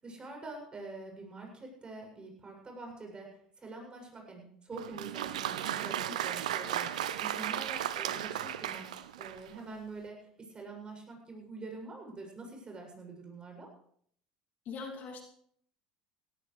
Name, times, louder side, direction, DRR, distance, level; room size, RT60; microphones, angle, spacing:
voice 1, 0.0-8.9 9.2-13.7, right 3 dB, 25° right, 1 dB, 7.6 m, -45 dB
Applause, 4.7-9.6, right 11 dB, 75° right, 0.7 m, -35 dB
voice 2, 14.6-15.2, left 5 dB, 50° left, 1 dB, 2.9 m, -41 dB
18.5 x 17.5 x 3.4 m, 0.65 s
hypercardioid pair, 75°, 4 cm